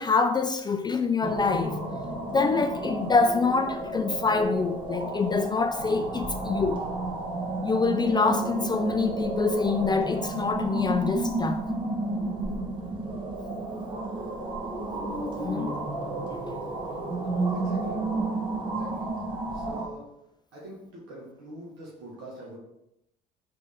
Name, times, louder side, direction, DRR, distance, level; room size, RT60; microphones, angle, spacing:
voice 1, 0.0-1.8 2.3-6.8 7.6-11.6 15.4-15.8, left 4 dB, 20° left, 0.3 m, -25 dB
sound 1, 1.2-19.9, right 2 dB, 25° right, 1.2 m, -31 dB
sound 2, 5.8-10.2, left 1 dB, 75° left, 0.5 m, -47 dB
voice 2, 17.5-18.0 18.6-19.1 19.5-20.1 20.5-22.6, right 1 dB, 75° right, 1.3 m, -44 dB
3.8 x 3.3 x 3.5 m
supercardioid pair, 70°, 20 cm